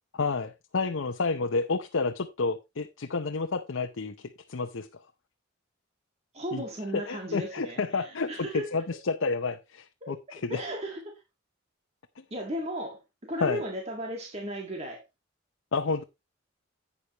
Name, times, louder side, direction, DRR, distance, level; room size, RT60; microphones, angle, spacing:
voice 1, 0.2-4.1 4.5-4.9 6.5-6.6 6.9-10.6 13.4-13.6 15.7-16.0, left 4 dB, 80° left, 0.7 m, -30 dB
voice 2, 6.3-8.7 10.0-10.2 10.5-11.0 12.3-15.0, equal, 30° right, 1.9 m, -35 dB
11.5 x 8.5 x 3.0 m
head